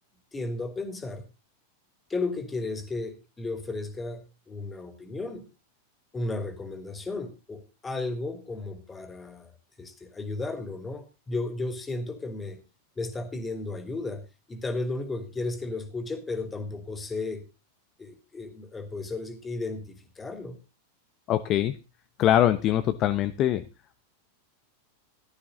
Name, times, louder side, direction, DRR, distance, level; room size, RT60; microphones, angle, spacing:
voice 1, 0.3-1.2 2.1-5.4 6.1-9.5 9.8-12.6 13.0-17.4 18.0-20.6, left 3 dB, 15° left, 9 dB, 2.9 m, -34 dB
voice 2, 21.3-21.8 22.2-23.6, left 12 dB, 35° left, 11 dB, 0.9 m, -23 dB
16.0 x 12.5 x 3.9 m, 0.30 s
figure-of-eight pair, 90°, 0 cm